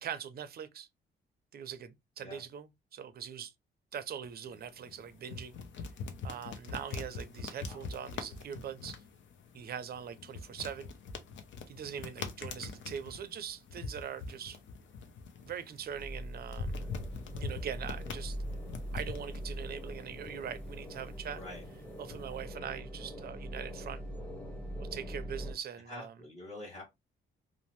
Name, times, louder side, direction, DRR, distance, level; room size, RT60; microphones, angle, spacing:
voice 1, 0.0-0.9 1.5-3.5 3.9-5.6 6.2-9.0 9.5-10.9 11.7-14.6 15.4-16.9 17.4-18.4 18.9-21.4 22.0-24.0 24.8-26.2, right 8 dB, 50° right, 0.5 m, -42 dB
sound 1, 4.2-22.5, left 4 dB, 70° left, 0.6 m, -44 dB
sound 2, 15.9-25.5, equal, 5° left, 0.8 m, -42 dB
voice 2, 21.3-21.7 25.9-26.8, left 1 dB, 35° left, 1.2 m, -46 dB
2.7 x 2.0 x 3.0 m
cardioid pair, 115°, 20 cm